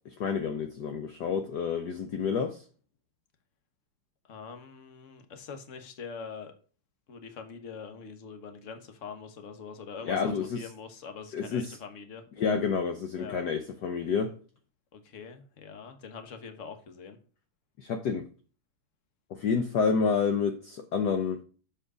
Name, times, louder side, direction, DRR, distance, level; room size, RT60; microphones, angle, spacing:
voice 1, 0.1-2.6 10.0-10.6 11.3-11.8 12.4-14.4 17.8-18.3 19.3-21.4, left 5 dB, 65° left, 1.1 m, -29 dB
voice 2, 4.3-6.5 7.1-12.2 13.2-13.4 14.9-17.2, left 5 dB, 45° left, 1.2 m, -44 dB
7.5 x 4.9 x 4.9 m
omnidirectional pair, 2.4 m